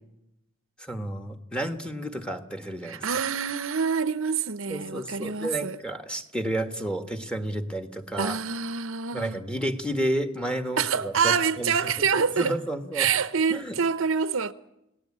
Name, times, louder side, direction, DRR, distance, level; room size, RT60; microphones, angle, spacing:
voice 1, 0.8-3.1 4.7-8.4 9.1-13.1 13.5-13.8, right 1 dB, 5° left, 1.5 m, -31 dB
voice 2, 2.8-5.8 8.2-9.4 10.8-12.6 12.9-14.5, right 6 dB, 80° right, 0.8 m, -26 dB
28.5 x 18.5 x 8.6 m
head